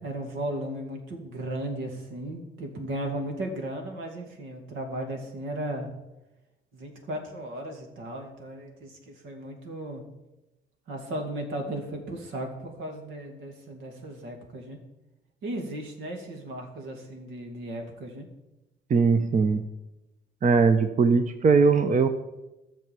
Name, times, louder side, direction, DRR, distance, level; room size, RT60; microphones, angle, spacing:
voice 1, 0.0-5.9 6.7-10.0 10.9-14.8 15.4-18.3, right 1 dB, 85° right, 3 dB, 2.4 m, -35 dB
voice 2, 18.9-19.6 20.4-22.1, right 4 dB, 40° right, 9 dB, 0.8 m, -20 dB
12.5 x 6.8 x 6.9 m, 0.99 s
cardioid pair, 90°, 20 cm